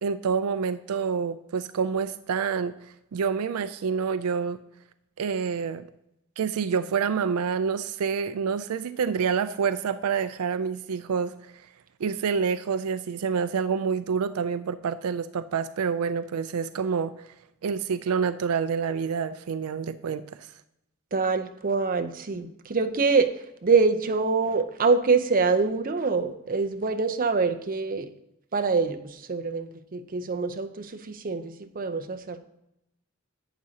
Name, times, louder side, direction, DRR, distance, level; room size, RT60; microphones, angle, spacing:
voice 1, 0.0-4.6 5.2-5.9 6.4-11.7 12.0-17.1 17.6-20.5, right 6 dB, 85° right, 12 dB, 0.4 m, -27 dB
voice 2, 21.1-23.3 23.6-28.1 28.5-32.4, right 4 dB, 40° right, 6 dB, 0.6 m, -25 dB
11.0 x 8.2 x 2.8 m, 0.85 s
head